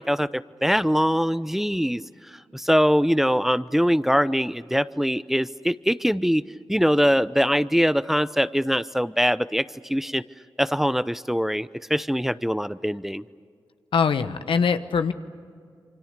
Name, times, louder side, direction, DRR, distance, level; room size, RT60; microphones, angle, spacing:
voice 1, 0.0-2.0 2.3-6.4 6.7-10.2 10.6-13.2, equal, 5° right, 15 dB, 0.7 m, -23 dB
voice 2, 13.9-15.1, left 6 dB, 80° left, 9 dB, 1.1 m, -22 dB
28.0 x 25.0 x 6.7 m, 2.2 s
cardioid pair, 40°, 9 cm